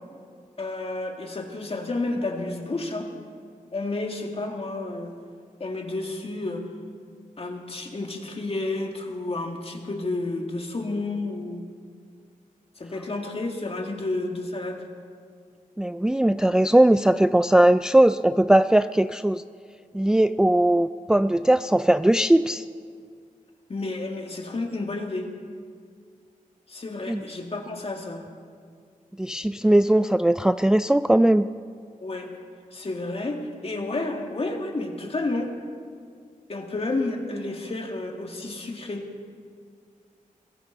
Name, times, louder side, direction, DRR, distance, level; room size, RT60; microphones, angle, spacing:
voice 1, 0.6-3.1 3.7-5.1 5.6-6.7 7.4-11.7 12.8-14.8 23.7-25.4 26.7-28.2 32.0-32.3 32.7-35.5 36.5-39.1, left 2 dB, 45° left, 2 dB, 2.2 m, -31 dB
voice 2, 15.8-19.4 19.9-22.6 27.1-27.2 29.2-31.5, right 1 dB, 5° right, 12 dB, 0.3 m, -19 dB
23.0 x 15.0 x 4.1 m, 2.1 s
cardioid pair, 70°, 14 cm